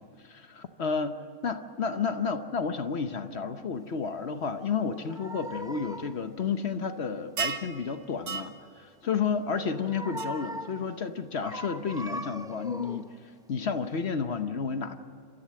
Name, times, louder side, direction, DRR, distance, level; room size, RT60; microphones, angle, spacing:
voice 1, 0.0-8.5 8.8-13.1 13.5-15.0, left 5 dB, 55° left, 8 dB, 1.1 m, -31 dB
sound 1, 4.6-6.3 9.4-10.9 11.4-13.2 13.7-13.9, equal, 5° right, 0.4 m, -40 dB
sound 2, 7.4-7.7 8.3-8.5 10.2-10.3, right 6 dB, 90° right, 1.4 m, -31 dB
27.0 x 14.0 x 7.6 m, 2.4 s
omnidirectional pair, 1.4 m